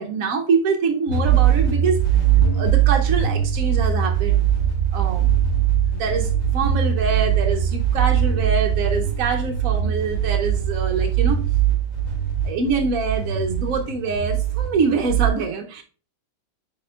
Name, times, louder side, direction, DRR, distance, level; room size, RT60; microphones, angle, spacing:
voice 1, 0.0-2.0 2.5-4.4 4.9-5.3 5.6-5.7 5.9-11.4 12.4-15.8, right 4 dB, 65° right, 2 dB, 0.8 m, -24 dB
sound 1, 1.1-15.3, right 9 dB, 65° left, 3.4 m, -21 dB
10.0 x 4.3 x 2.3 m, 0.37 s
omnidirectional pair, 2.2 m